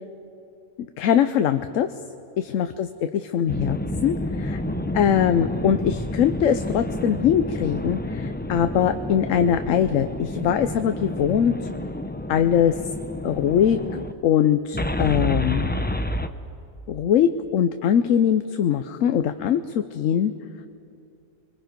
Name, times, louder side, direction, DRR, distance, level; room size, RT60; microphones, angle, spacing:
voice 1, 1.0-1.9 2.4-2.9 3.3-4.6 4.9-11.5 12.3-12.7 13.2-15.8 16.9-20.3, left 9 dB, 75° left, 9 dB, 1.1 m, -22 dB
sound 1, 3.5-14.1 14.7-16.3, left 1 dB, 15° left, 0.4 m, -29 dB
30.0 x 22.5 x 5.2 m, 2.6 s
omnidirectional pair, 1.4 m